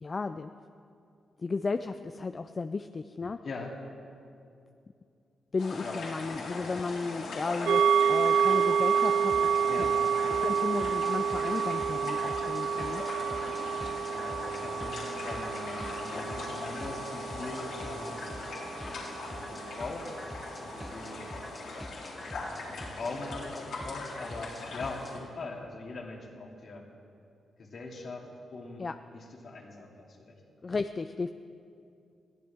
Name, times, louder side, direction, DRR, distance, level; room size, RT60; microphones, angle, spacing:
voice 1, 0.0-0.5 1.4-3.4 5.5-9.6 10.4-13.0 28.8-28.9 30.6-31.3, left 4 dB, 40° left, 9 dB, 0.4 m, -34 dB
voice 2, 3.4-3.7 5.8-6.0 6.4-6.7 9.7-10.0 14.1-18.2 19.3-20.3 20.6-21.2 22.3-26.9 27.6-28.9 29.1-30.3, left 3 dB, 60° left, -1 dB, 2.7 m, -41 dB
sound 1, 5.6-25.2, left 3 dB, 85° left, 4.3 m, -40 dB
sound 2, 7.7-19.3 19.7-19.8, right 7 dB, 75° right, 0.3 m, -29 dB
sound 3, 9.3-25.1, equal, 5° left, 1.0 m, -45 dB
21.5 x 15.0 x 3.6 m, 2.5 s
cardioid pair, 70°, 0 cm